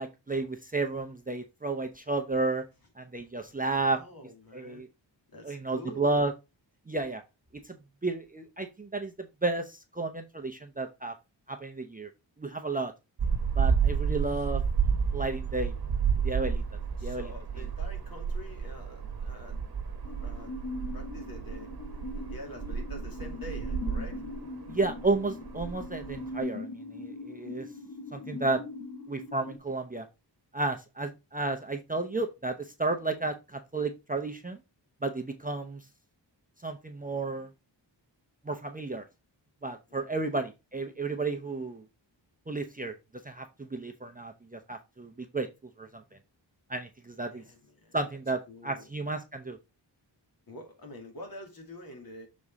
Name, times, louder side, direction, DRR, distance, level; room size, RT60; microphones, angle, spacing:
voice 1, 0.0-2.6 3.0-4.0 4.5-4.9 5.4-6.3 6.9-7.2 7.6-7.8 8.0-11.2 11.5-12.1 12.4-12.9 13.6-14.6 15.1-15.7 16.2-16.6 17.0-17.3 24.7-27.7 28.1-28.6 29.1-30.1 30.5-34.6 35.0-35.9 36.6-37.5 38.4-39.0 39.6-41.8 42.5-42.9 43.2-45.5 45.8-46.0 46.7-47.4 47.9-49.6, right 3 dB, 20° right, 0.6 m, -32 dB
voice 2, 3.9-4.8 5.3-6.3 17.0-19.7 20.1-20.6 20.9-21.7 22.1-24.2 39.9-40.3 47.3-48.0 48.5-48.9 50.5-52.3, left 1 dB, 50° left, 2.5 m, -46 dB
sound 1, 13.2-26.4, right 6 dB, 55° right, 1.1 m, -31 dB
sound 2, 20.0-29.6, left 2 dB, 70° left, 2.1 m, -41 dB
6.7 x 4.2 x 3.5 m
wide cardioid pair, 160°, 44 cm